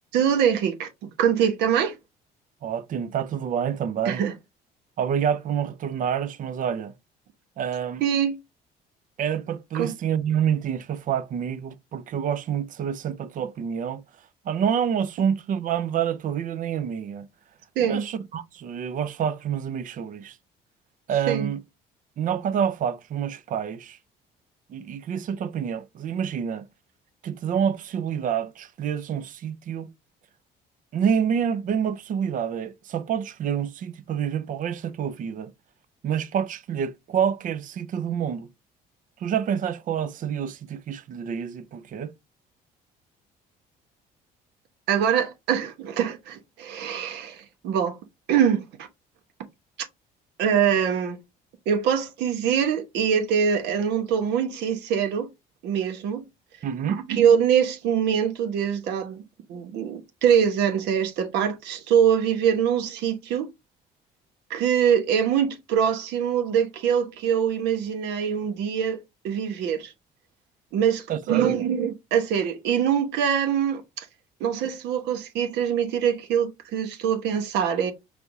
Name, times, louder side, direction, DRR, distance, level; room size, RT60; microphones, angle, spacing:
voice 1, 0.1-2.0 4.0-4.3 8.0-8.4 9.7-9.9 17.8-18.0 21.3-21.5 44.9-48.0 48.3-48.6 50.4-51.2 51.7-55.3 55.6-56.2 56.9-59.2 59.5-63.5 64.5-69.0 69.2-69.9 70.7-74.1 74.4-77.9, right 8 dB, 85° right, 1.0 m, -23 dB
voice 2, 2.6-4.2 5.0-6.9 7.6-8.0 9.2-14.0 14.4-17.3 17.8-20.4 21.1-21.6 22.2-24.0 24.7-26.7 27.2-29.9 30.9-35.5 36.0-38.5 39.2-42.1 56.6-57.0 71.1-71.6, right 8 dB, 50° right, 0.6 m, -27 dB
4.6 x 3.4 x 2.6 m
cardioid pair, 110°, 17 cm